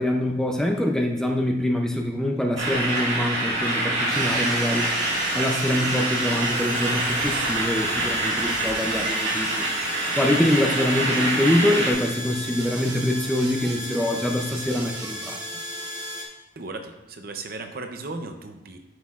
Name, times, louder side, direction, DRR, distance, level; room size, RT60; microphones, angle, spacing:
voice 1, 0.0-4.9 5.3-9.6 10.2-15.4, left 1 dB, 5° left, 1 dB, 0.5 m, -24 dB
sound 1, 2.6-11.9, right 2 dB, 85° right, 2.0 m, -26 dB
sound 2, 4.1-16.2, equal, 20° right, 1.2 m, -35 dB
voice 2, 16.6-18.8, right 3 dB, 50° right, 6 dB, 0.6 m, -36 dB
9.3 x 6.3 x 2.4 m, 0.97 s
head